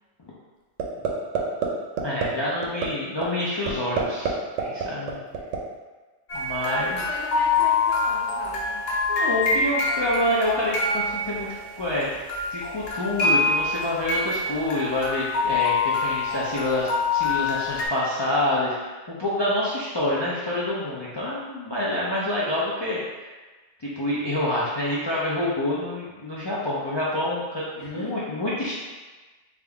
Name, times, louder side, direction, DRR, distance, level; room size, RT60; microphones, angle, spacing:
sound 1, 0.8-1.1 1.3-1.7 2.0-2.2 2.6-2.9 3.2-3.3 3.7-4.3 4.6-5.6, right 7 dB, 80° right, 0.9 m, -25 dB
voice 1, 2.0-5.2 6.3-7.0 9.1-11.5 11.8-12.1 12.5-23.3 23.8-28.7, left 1 dB, 40° left, -8 dB, 0.4 m, -27 dB
sound 2, 6.3-12.0 12.3-17.9, left 3 dB, 60° left, 0.8 m, -25 dB
voice 2, 6.6-8.8 27.7-28.4, right 1 dB, 40° right, -8 dB, 0.4 m, -38 dB
3.5 x 2.6 x 3.4 m, 1.3 s
omnidirectional pair, 1.3 m